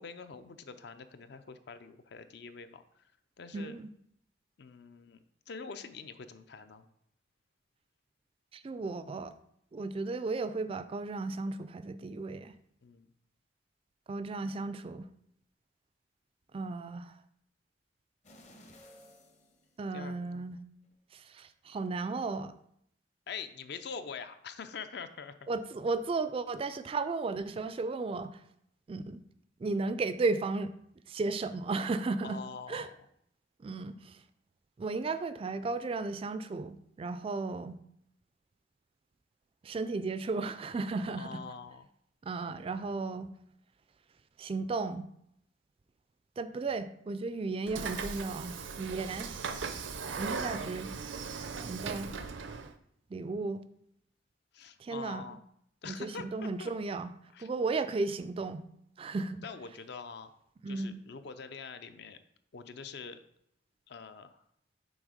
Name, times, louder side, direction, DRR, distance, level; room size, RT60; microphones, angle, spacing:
voice 1, 0.0-3.1 3.4-3.8 4.6-6.9 12.8-13.1 19.9-20.4 23.3-25.4 32.2-32.9 41.2-41.9 54.5-55.4 55.8-56.7 57.3-57.5 59.4-60.3 60.7-62.2 62.5-63.2 63.9-64.4, left 5 dB, 60° left, 10 dB, 0.5 m, -45 dB
voice 2, 3.5-3.9 8.5-9.3 9.7-12.5 14.1-15.1 16.5-17.2 19.8-20.6 21.1-22.5 25.5-28.4 28.9-29.2 29.6-30.7 31.1-32.4 32.7-32.9 33.6-34.2 34.8-37.8 39.6-41.4 42.2-43.3 44.4-45.1 46.4-49.3 50.1-50.9 51.6-52.1 53.1-53.6 54.8-55.2 55.9-57.1 57.4-58.7 59.0-59.4 60.6-61.0, right 3 dB, 30° right, 12 dB, 0.3 m, -34 dB
sound 1, 18.2-20.4 20.8-20.9, left 1 dB, 40° left, 0.8 m, -57 dB
Train / Sliding door, 47.7-52.7, right 5 dB, 80° right, 0.5 m, -38 dB
6.2 x 3.9 x 5.0 m, 0.71 s
head